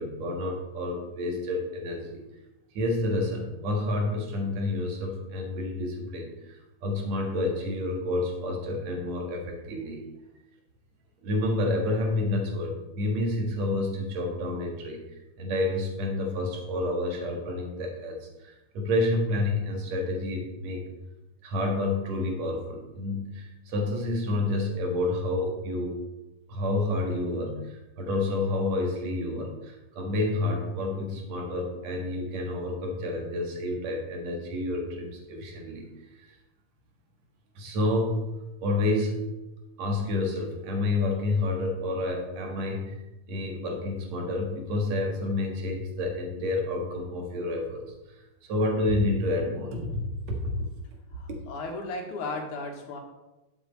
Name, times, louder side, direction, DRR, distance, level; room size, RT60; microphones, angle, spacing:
voice 1, 0.0-2.3 2.7-10.0 11.2-20.8 21.4-26.0 26.5-35.9 36.2-36.3 37.6-38.3 38.6-39.2 39.8-43.0 43.3-50.0 50.3-50.5, left 2 dB, 65° right, 1 dB, 2.8 m, -29 dB
voice 2, 51.1-53.0, left 3 dB, 90° left, 3 dB, 2.9 m, -35 dB
11.0 x 7.5 x 4.1 m, 1.0 s
omnidirectional pair, 3.4 m